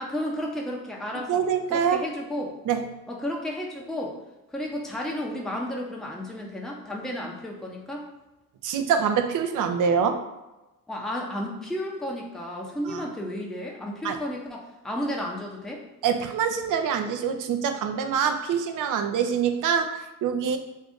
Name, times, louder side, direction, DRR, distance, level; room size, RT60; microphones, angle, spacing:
voice 1, 0.0-1.4 1.7-2.5 3.1-4.1 4.5-8.0 10.9-15.8, left 1 dB, ahead, -1 dB, 0.6 m, -32 dB
voice 2, 1.3-2.0 2.7-2.8 8.6-10.2 12.9-13.1 14.0-14.2 16.0-20.6, right 7 dB, 55° right, 7 dB, 0.5 m, -25 dB
2.7 x 2.5 x 3.5 m, 1.0 s
hypercardioid pair, 55°, 40 cm